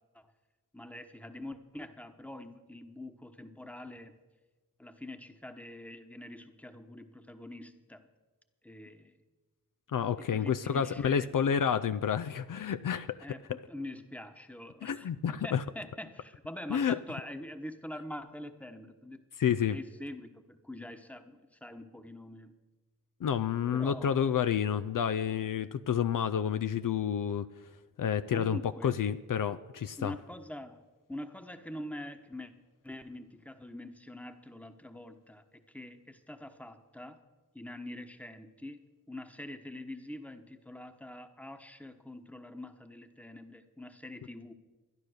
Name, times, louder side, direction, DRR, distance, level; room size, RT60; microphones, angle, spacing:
voice 1, 0.7-4.1 4.8-8.1 8.6-9.2 10.2-11.3 13.2-19.2 19.7-22.5 23.7-24.3 28.3-29.0 30.0-30.8 31.1-32.5 32.8-37.2 37.5-38.8 39.1-44.5, left 1 dB, 5° left, 8 dB, 1.1 m, -44 dB
voice 2, 9.9-13.2 13.5-13.6 14.8-15.6 16.7-17.0 19.4-19.8 23.2-27.5 28.0-30.2, left 8 dB, 70° left, 12 dB, 0.5 m, -29 dB
12.5 x 10.5 x 6.5 m, 1.2 s
cardioid pair, 45°, 33 cm